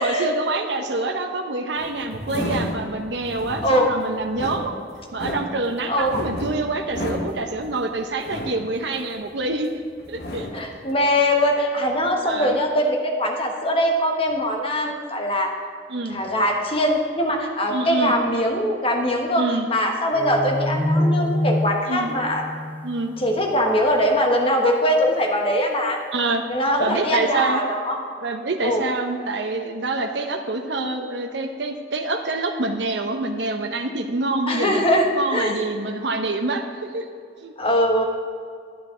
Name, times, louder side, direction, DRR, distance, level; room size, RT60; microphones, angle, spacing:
voice 1, 0.0-4.7 5.1-9.7 10.1-10.5 12.2-12.6 15.9-16.2 17.7-18.1 19.4-19.7 21.9-22.1 22.8-23.2 26.1-26.5 26.8-27.6 28.2-34.9 35.1-37.1 37.4-37.5, right 2 dB, 80° right, 4 dB, 0.8 m, -26 dB
sound 1, 1.8-9.7 10.0-10.8, equal, 65° left, 1.4 m, -32 dB
voice 2, 10.5-15.5 16.1-22.4 23.2-26.0 26.5-28.0 28.6-28.8 34.5-35.6 37.6-38.0, equal, 35° left, 2 dB, 1.3 m, -22 dB
sound 2, 20.1-23.6, left 1 dB, 10° left, 0.8 m, -25 dB
11.0 x 9.9 x 3.8 m, 2.2 s
head